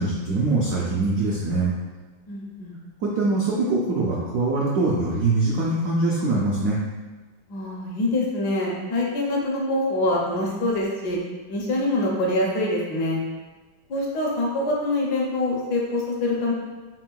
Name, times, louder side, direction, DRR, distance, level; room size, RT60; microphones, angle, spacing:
voice 1, 0.0-1.7 3.0-6.8, right 3 dB, 85° right, -4 dB, 0.7 m, -23 dB
voice 2, 2.3-2.8 7.5-11.2 11.5-13.2 13.9-16.5, left 1 dB, 65° left, -3 dB, 1.1 m, -25 dB
4.5 x 3.7 x 2.2 m, 1.3 s
omnidirectional pair, 2.1 m